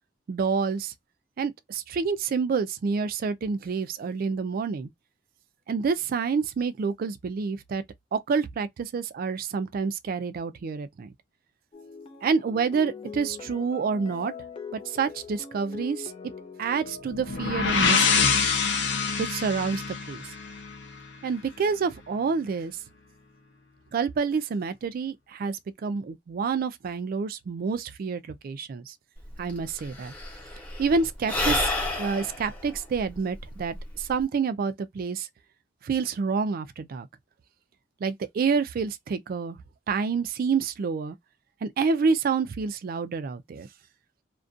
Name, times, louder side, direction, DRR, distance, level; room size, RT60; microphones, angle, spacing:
voice 1, 0.3-0.9 1.4-4.9 5.7-7.8 8.1-11.1 12.2-14.3 14.7-16.1 16.6-18.3 19.2-20.3 21.2-22.8 23.9-28.9 29.4-30.1 30.8-31.7 32.0-35.3 35.8-37.1 38.0-39.6 39.9-41.2 41.6-43.7, right 5 dB, 50° right, 0.3 m, -28 dB
sound 1, 11.7-17.9, left 5 dB, 30° left, 0.3 m, -42 dB
sound 2, 17.1-20.9, left 5 dB, 85° left, 0.7 m, -25 dB
Sigh / Breathing, 29.2-29.3 29.5-34.2, left 2 dB, 10° left, 0.8 m, -30 dB
2.4 x 2.2 x 2.5 m
head